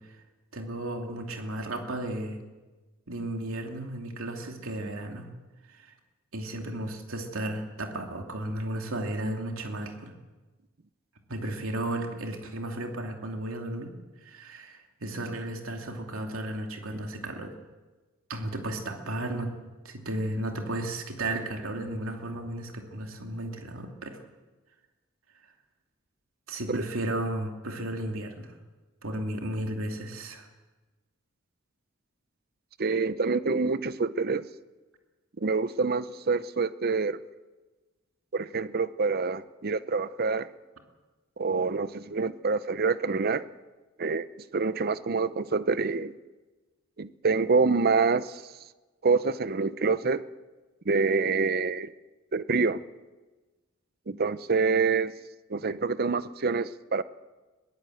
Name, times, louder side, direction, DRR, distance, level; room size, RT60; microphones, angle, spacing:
voice 1, 0.5-2.4 3.1-5.3 5.7-5.9 6.3-10.1 11.3-13.9 14.2-17.5 18.3-19.5 19.8-24.2 26.5-28.5 29.0-30.5, right 1 dB, 85° right, 3 dB, 2.7 m, -34 dB
voice 2, 32.8-34.5 35.4-37.2 38.3-40.5 41.4-43.4 44.0-44.3 44.5-46.1 47.0-48.4 49.0-50.2 50.9-51.9 52.3-52.8 54.1-55.1 55.5-57.0, right 4 dB, 50° right, 15 dB, 0.7 m, -26 dB
22.0 x 16.5 x 7.9 m, 1.2 s
head